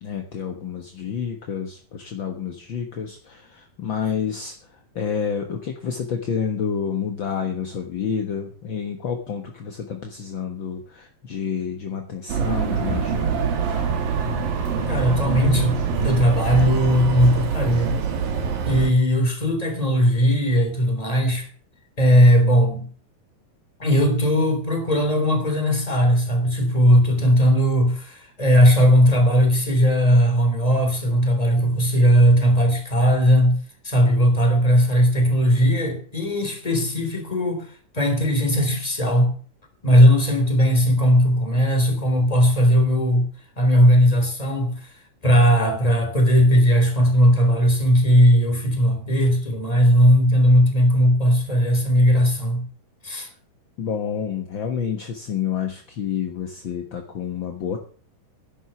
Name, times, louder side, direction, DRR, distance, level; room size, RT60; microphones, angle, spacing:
voice 1, 0.0-4.5 4.9-13.5 53.8-57.8, left 7 dB, 55° left, 1.4 m, -29 dB
sound 1, 12.3-18.9, right 6 dB, 85° right, 3.8 m, -24 dB
voice 2, 14.9-18.0 18.6-21.5 22.0-22.9 23.8-33.6 33.8-37.7 37.9-39.3 39.8-43.2 43.6-44.9 45.2-52.6 53.0-53.3, equal, 10° left, 3.4 m, -18 dB
11.0 x 11.0 x 7.0 m
omnidirectional pair, 4.0 m